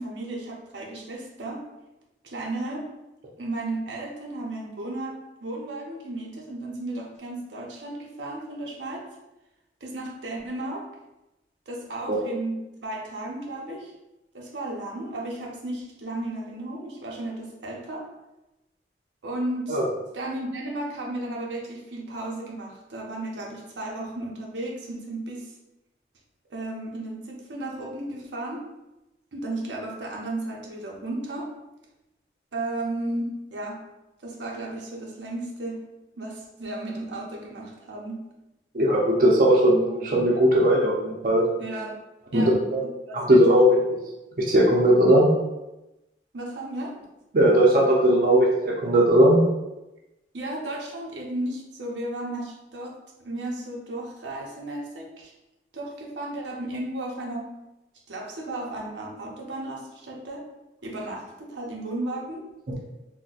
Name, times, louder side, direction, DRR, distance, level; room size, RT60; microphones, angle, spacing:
voice 1, 0.0-1.6 2.2-2.9 3.4-9.1 9.8-10.9 11.7-13.9 14.3-18.1 19.2-19.8 20.1-25.5 26.5-28.6 29.3-31.5 32.5-33.8 34.2-35.9 36.2-38.2 41.6-41.9 42.3-42.5 43.1-43.6 46.3-47.0 50.3-55.3 55.7-57.5 58.1-60.4 60.8-62.4, right 1 dB, 90° right, -1 dB, 0.6 m, -34 dB
voice 2, 38.7-41.4 42.3-42.8 43.1-43.7 44.5-45.3 47.3-49.4, right 1 dB, 50° right, -3 dB, 0.6 m, -18 dB
4.0 x 2.1 x 2.4 m, 0.96 s
head